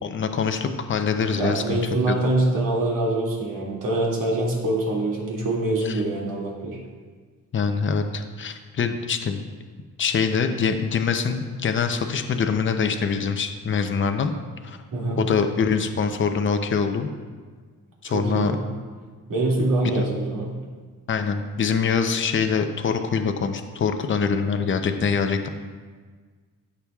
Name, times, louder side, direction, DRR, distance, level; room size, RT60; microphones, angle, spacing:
voice 1, 0.0-1.8 2.1-2.2 5.8-6.0 7.5-9.5 10.0-14.3 14.6-14.8 15.2-17.1 18.0-18.6 19.9-20.1 21.1-25.5, left 5 dB, 35° left, 7 dB, 0.6 m, -24 dB
voice 2, 1.4-6.8 14.9-15.2 18.1-18.6 19.3-20.5, right 2 dB, 65° right, -4 dB, 2.3 m, -24 dB
13.5 x 6.9 x 2.4 m, 1.5 s
cardioid pair, 135°, 36 cm